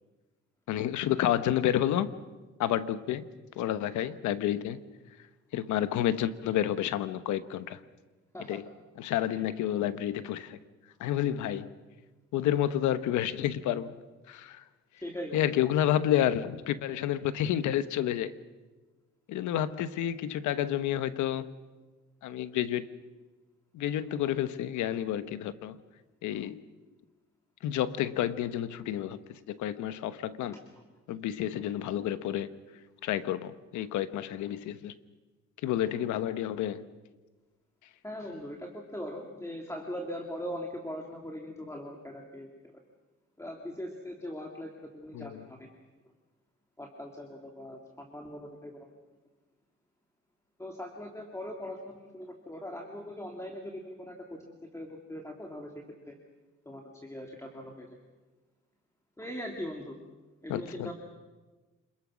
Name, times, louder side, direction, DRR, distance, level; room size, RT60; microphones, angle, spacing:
voice 1, 0.7-2.1 2.6-3.2 3.6-4.8 5.5-7.8 8.5-8.6 9.0-10.6 11.0-11.7 12.3-13.9 14.3-14.6 15.3-18.3 19.3-21.5 22.2-22.9 23.7-25.8 26.2-26.6 27.6-29.2 29.5-30.6 31.1-32.5 33.0-34.9 35.6-36.8 45.1-45.4 60.5-60.9, left 11 dB, 90° left, 1.1 m, -30 dB
voice 2, 15.0-15.4 38.0-42.5 43.4-45.7 46.8-48.9 50.6-56.2 56.7-57.9 59.2-60.0 60.4-60.9, equal, 10° left, 2.6 m, -40 dB
27.0 x 22.0 x 6.3 m
cardioid pair, 95°, 29 cm